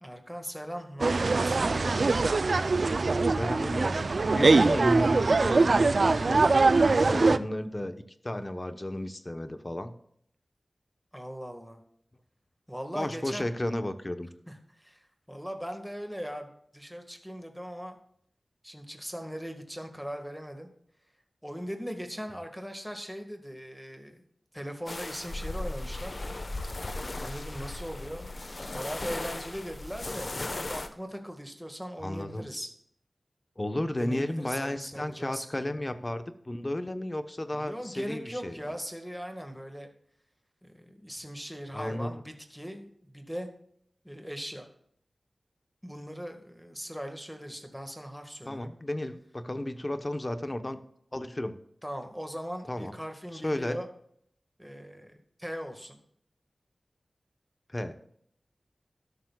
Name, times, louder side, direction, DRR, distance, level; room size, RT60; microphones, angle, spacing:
voice 1, 0.0-2.0 6.7-7.4 11.1-11.8 12.7-13.5 14.5-18.0 18.6-20.7 21.4-24.2 24.5-26.2 27.1-28.4 28.7-32.7 34.0-35.7 37.5-39.9 40.6-43.5 44.0-44.7 45.8-48.7 51.8-53.9 54.6-56.0, equal, ahead, 4 dB, 1.8 m, -39 dB
sound 1, 1.0-7.4, right 3 dB, 70° right, 0.5 m, -23 dB
voice 2, 3.3-7.9 8.2-9.9 12.9-14.3 32.0-32.5 33.6-38.6 41.7-42.1 48.5-50.8 51.1-51.6 52.7-52.9 53.3-53.8 57.7-58.0, left 1 dB, 30° left, 9 dB, 1.0 m, -33 dB
sound 2, 24.9-30.9, left 2 dB, 50° left, 1.1 m, -37 dB
13.0 x 12.0 x 2.4 m, 0.68 s
wide cardioid pair, 65°, 0 cm